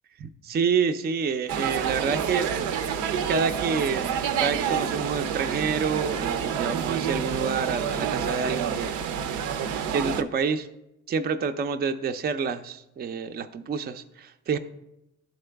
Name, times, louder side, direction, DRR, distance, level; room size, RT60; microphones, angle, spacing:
voice 1, 0.2-2.5 3.3-9.0 9.9-10.7 11.1-14.6, right 5 dB, 35° right, 8 dB, 0.4 m, -28 dB
sound 1, 1.5-10.2, right 7 dB, 90° right, 0.6 m, -28 dB
11.0 x 3.8 x 3.4 m, 0.86 s
cardioid pair, 90°, 30 cm